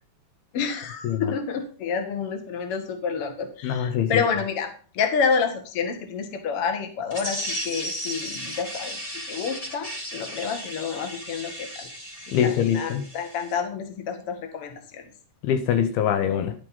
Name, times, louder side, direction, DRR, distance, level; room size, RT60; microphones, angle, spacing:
voice 1, 0.5-9.0 9.3-11.9 12.3-15.1, left 6 dB, 45° left, 6 dB, 2.2 m, -29 dB
voice 2, 3.6-4.1 12.3-13.0 15.4-16.5, left 9 dB, 80° left, 9 dB, 2.9 m, -23 dB
sound 1, 7.1-13.5, equal, 15° left, 1.1 m, -35 dB
11.5 x 8.2 x 5.4 m, 0.39 s
omnidirectional pair, 4.5 m